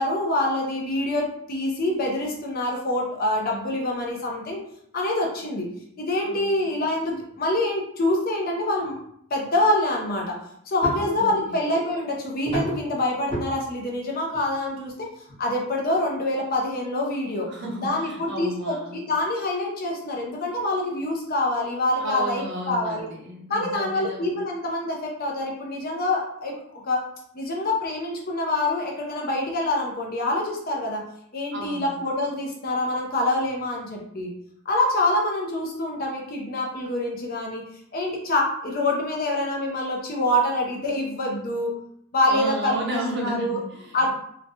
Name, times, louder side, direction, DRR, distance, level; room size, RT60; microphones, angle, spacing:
voice 1, 0.0-4.6 4.9-5.7 6.0-8.9 9.3-10.3 10.7-14.9 15.4-17.5 17.8-23.1 23.5-26.5 26.8-27.0 27.3-31.0 31.3-34.3 34.7-37.6 37.9-41.7 42.1-43.6 43.9-44.1, left 1 dB, 45° left, -1 dB, 0.6 m, -26 dB
sound 1, 10.8-11.2 12.5-12.9 13.3-13.5 14.3-14.4 14.9-15.0 15.3-15.4 16.0-16.1, right 1 dB, 25° left, 0.9 m, -30 dB
voice 2, 10.9-11.6 17.5-19.0 22.0-24.4 31.5-31.9 42.2-44.1, right 1 dB, 55° right, -1 dB, 0.7 m, -33 dB
3.0 x 2.1 x 2.7 m, 0.71 s
head